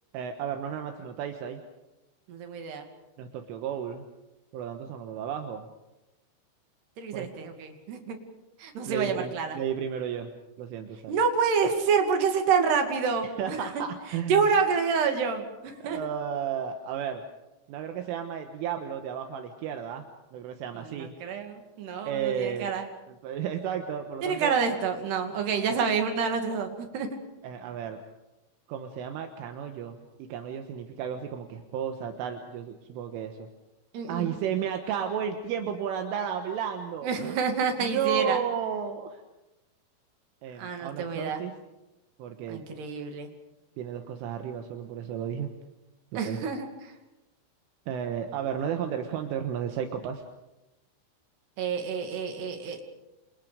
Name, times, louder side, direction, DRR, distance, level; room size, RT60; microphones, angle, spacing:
voice 1, 0.1-1.6 3.2-4.1 4.5-5.7 7.1-7.3 8.9-10.3 10.6-11.2 13.4-14.5 15.8-17.2 17.7-20.1 20.3-21.1 22.1-22.7 23.1-24.6 27.4-28.0 28.7-33.5 34.1-37.4 37.8-39.2 40.4-41.5 42.2-42.6 43.8-45.5 46.1-46.4 47.9-50.2, right 8 dB, 75° right, 5 dB, 3.8 m, -33 dB
voice 2, 2.3-2.9 7.0-8.2 8.6-9.6 11.1-13.6 14.3-16.0 20.8-22.9 24.2-27.1 33.9-34.4 37.0-38.4 40.6-41.4 42.5-43.3 46.2-46.7 51.6-52.8, right 5 dB, 55° right, 5 dB, 4.2 m, -28 dB
28.5 x 28.0 x 5.2 m, 1.0 s
omnidirectional pair, 5.9 m